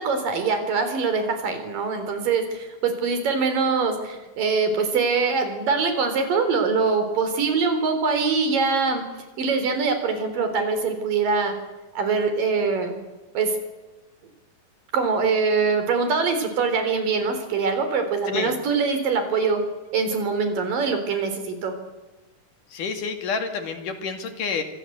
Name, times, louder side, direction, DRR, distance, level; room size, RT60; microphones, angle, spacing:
voice 1, 0.0-9.0 9.4-11.5 12.0-13.0 13.3-13.6 14.9-19.6 19.9-21.8, right 4 dB, 80° right, 7 dB, 5.6 m, -23 dB
voice 2, 22.7-24.6, left 5 dB, 70° left, 6 dB, 4.0 m, -28 dB
27.0 x 24.5 x 8.1 m, 1.1 s
omnidirectional pair, 3.8 m